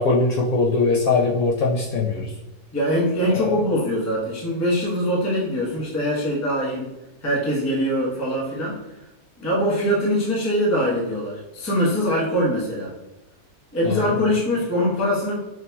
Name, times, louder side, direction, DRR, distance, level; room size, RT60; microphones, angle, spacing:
voice 1, 0.0-2.2 3.5-3.6 13.8-14.0, left 3 dB, 65° left, -4 dB, 1.0 m, -21 dB
voice 2, 2.7-6.9 7.2-8.8 9.4-12.9 13.7-15.4, equal, 15° left, -4 dB, 0.6 m, -23 dB
6.0 x 2.7 x 2.2 m, 1.0 s
omnidirectional pair, 1.9 m